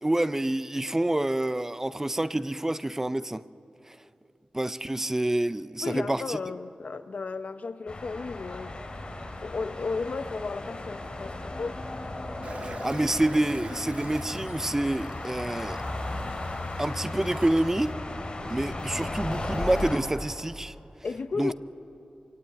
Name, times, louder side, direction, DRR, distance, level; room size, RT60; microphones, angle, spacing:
voice 1, 0.0-3.4 3.9-4.0 4.5-6.4 12.6-15.8 16.8-18.0 18.5-20.7 21.4-21.5, right 1 dB, 15° right, 0.6 m, -27 dB
voice 2, 5.8-8.8 9.4-11.9 21.0-21.5, left 4 dB, 65° left, 0.9 m, -34 dB
sound 1, 7.9-20.0, left 2 dB, 40° left, 3.6 m, -35 dB
Toilet flush, 12.4-17.9, right 3 dB, 55° right, 0.8 m, -46 dB
26.5 x 24.0 x 9.3 m
wide cardioid pair, 105°, 3 cm